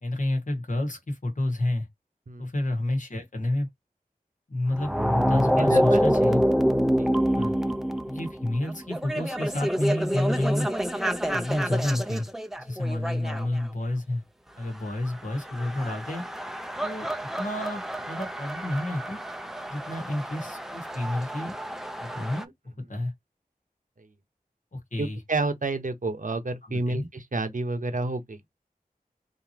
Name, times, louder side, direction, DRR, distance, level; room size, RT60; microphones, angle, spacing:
voice 1, 0.0-1.9 2.4-3.7 4.5-4.9 5.2-6.4 7.4-7.6 8.1-10.7 11.3-12.3 12.6-14.2 14.5-16.2 16.8-17.1 17.4-19.2 19.7-21.5 22.0-22.5 22.9-23.1 24.7-25.2 26.6-27.1, left 1 dB, 55° left, 1.4 m, -29 dB
sound 1, 4.7-13.6 15.1-22.4, equal, ahead, 0.6 m, -27 dB
voice 2, 5.6-6.0 7.0-7.1 24.0-24.1 25.0-28.5, right 3 dB, 60° right, 1.0 m, -30 dB
3.9 x 2.8 x 2.9 m
wide cardioid pair, 45°, 15 cm